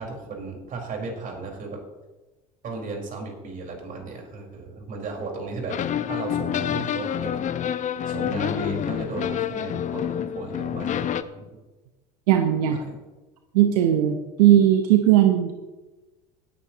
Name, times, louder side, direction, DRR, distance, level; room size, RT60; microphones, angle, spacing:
voice 1, 0.0-1.8 2.6-5.7 6.1-7.8 8.0-11.5 12.7-13.0, right 3 dB, 45° right, 0 dB, 4.8 m, -35 dB
sound 1, 5.7-11.2, left 9 dB, 40° left, 0.8 m, -28 dB
voice 2, 12.3-12.8 13.5-15.5, right 11 dB, 80° right, 5 dB, 1.0 m, -18 dB
17.0 x 10.5 x 3.0 m, 1.2 s
hypercardioid pair, 80°, 19 cm